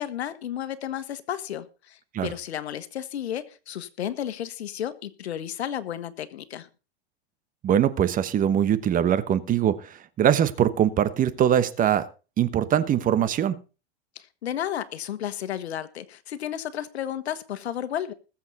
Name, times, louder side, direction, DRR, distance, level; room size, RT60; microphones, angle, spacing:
voice 1, 0.0-6.7 14.1-18.1, left 10 dB, 85° left, 1.4 m, -33 dB
voice 2, 7.6-12.1 12.4-13.6, right 9 dB, 25° right, 1.1 m, -22 dB
21.0 x 7.4 x 4.1 m
hypercardioid pair, 125°, 32 cm